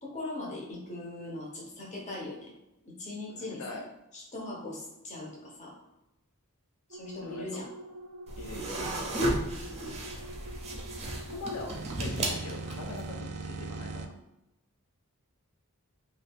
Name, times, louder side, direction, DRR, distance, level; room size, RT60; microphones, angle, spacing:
voice 1, 0.0-2.5 2.8-3.8 4.1-5.7 6.9-7.7 9.6-9.9, left 2 dB, 35° left, -2 dB, 0.8 m, -40 dB
voice 2, 3.3-3.9 7.2-7.6 8.4-8.9 11.1-14.1, left 3 dB, 90° left, 2 dB, 0.5 m, -42 dB
sound 1, 6.9-14.1, right 3 dB, 80° right, 0.4 m, -42 dB
sound 2, 8.3-13.0, right 1 dB, 30° right, 0.6 m, -34 dB
2.7 x 2.4 x 3.4 m, 0.90 s
head